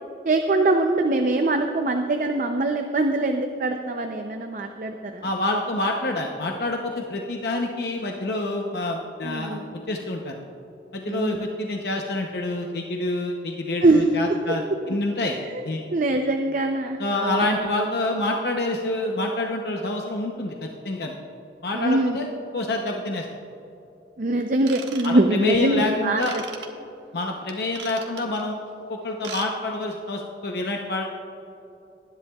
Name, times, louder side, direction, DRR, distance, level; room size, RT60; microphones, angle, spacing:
voice 1, 0.3-5.2 9.2-9.6 11.1-11.4 13.8-14.0 15.9-17.7 21.7-22.2 24.2-26.2, right 2 dB, 45° right, 4 dB, 0.6 m, -23 dB
voice 2, 5.2-10.3 10.9-15.3 15.6-15.8 17.0-21.1 21.6-22.3 22.5-23.3 25.0-26.3 27.1-28.6 28.9-31.1, left 2 dB, 65° left, 1 dB, 0.8 m, -27 dB
Ratchet pawl / Tools, 24.6-25.5 26.2-26.7 27.5-28.4 29.1-29.5 29.7-29.9 30.4-30.5, right 6 dB, 80° right, 1.1 m, -38 dB
19.5 x 10.5 x 2.4 m, 2.9 s
head